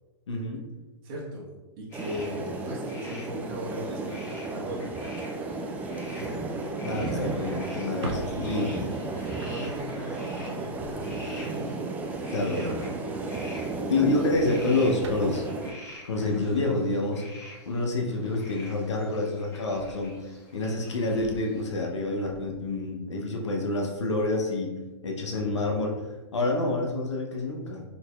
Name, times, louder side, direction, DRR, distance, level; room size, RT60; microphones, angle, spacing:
voice 1, 0.3-0.6 6.8-8.7 12.3-12.7 13.9-15.5 16.0-17.2 17.7-24.7 25.0-27.8, left 2 dB, 90° left, 0 dB, 0.6 m, -28 dB
voice 2, 1.0-1.5 1.8-5.1 6.0-6.3 6.7-7.6 8.0-8.8 9.5-11.8 12.2-12.9 25.3-25.6, equal, 50° right, -5 dB, 1.2 m, -38 dB
sound 1, 1.9-21.7, left 1 dB, 20° left, 1.2 m, -48 dB
sound 2, 1.9-15.7, right 3 dB, 10° right, 0.3 m, -34 dB
Drawer open or close, 7.8-11.5 12.9-13.2 13.6-13.8 14.2-17.1 17.6-20.3 20.7-22.7, right 3 dB, 80° right, 0.5 m, -44 dB
4.0 x 2.9 x 2.3 m, 1.2 s
hypercardioid pair, 120°, 15 cm